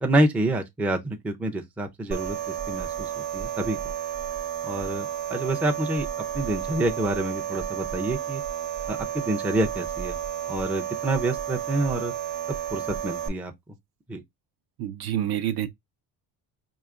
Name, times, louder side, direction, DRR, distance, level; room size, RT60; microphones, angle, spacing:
voice 1, 0.0-3.8 4.6-6.1 6.3-8.4 8.9-10.2 10.5-12.1 12.5-13.5 14.1-14.2, right 1 dB, 5° right, 0.4 m, -27 dB
sound 1, 2.1-13.3, right 10 dB, 85° right, 1.2 m, -32 dB
voice 2, 14.8-15.7, right 11 dB, 60° right, 0.6 m, -27 dB
4.7 x 2.8 x 2.4 m
cardioid pair, 140°, 42 cm